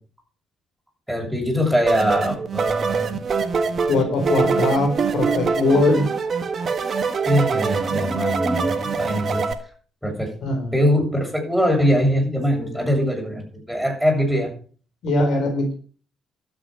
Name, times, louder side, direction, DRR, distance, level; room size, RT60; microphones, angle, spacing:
voice 1, 1.1-3.1 7.2-9.4 10.0-10.3 10.7-14.5, equal, ahead, 0 dB, 7.4 m, -22 dB
sound 1, 1.9-9.5, right 5 dB, 50° right, 1.7 m, -24 dB
voice 2, 3.9-6.1 10.4-10.8 15.0-15.7, left 2 dB, 65° left, 4 dB, 4.1 m, -21 dB
12.5 x 8.3 x 6.4 m, 0.42 s
hypercardioid pair, 45°, 0 cm